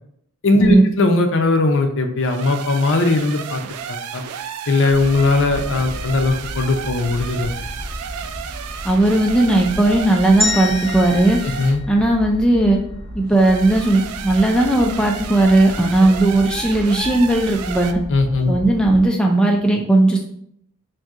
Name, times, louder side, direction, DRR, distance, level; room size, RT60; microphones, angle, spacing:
voice 1, 0.4-3.6 3.9-4.2 4.7-7.5 11.4-11.8 18.1-18.6, left 2 dB, 60° left, 5 dB, 0.5 m, -18 dB
sound 1, 2.2-11.8 13.3-17.9, right 8 dB, 85° right, 0.3 m, -32 dB
sound 2, 4.9-19.1, equal, 65° right, 0.7 m, -34 dB
voice 2, 8.8-11.4 11.9-12.8 13.1-18.0 18.5-20.2, right 2 dB, 5° left, 0 dB, 0.3 m, -16 dB
sound 3, 10.4-12.6, left 1 dB, 25° right, 1.6 m, -27 dB
5.7 x 2.6 x 2.4 m, 0.72 s
head